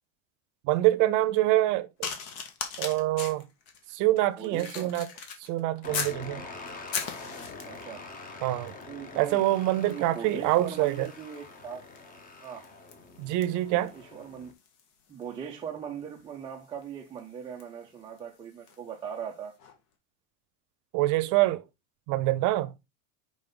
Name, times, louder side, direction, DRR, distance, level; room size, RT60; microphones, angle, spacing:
voice 1, 0.6-2.1 2.8-3.5 3.9-5.1 5.4-6.5 8.4-8.7 9.2-11.1 13.2-13.9 20.9-21.6 22.1-22.7, right 16 dB, 40° right, 0.7 m, -25 dB
sound 1, 2.0-6.2 6.7-7.9 8.7-8.9 9.2-18.9 19.6-19.7, left 6 dB, 65° left, 1.8 m, -41 dB
voice 2, 4.4-4.9 7.6-8.0 8.9-9.4 9.9-11.8 12.4-12.6 13.7-14.5 15.1-19.6, right 7 dB, 10° right, 0.3 m, -40 dB
sound 2, 5.8-14.5, left 3 dB, 20° left, 0.8 m, -45 dB
5.3 x 5.2 x 3.8 m
supercardioid pair, 150°, 45 cm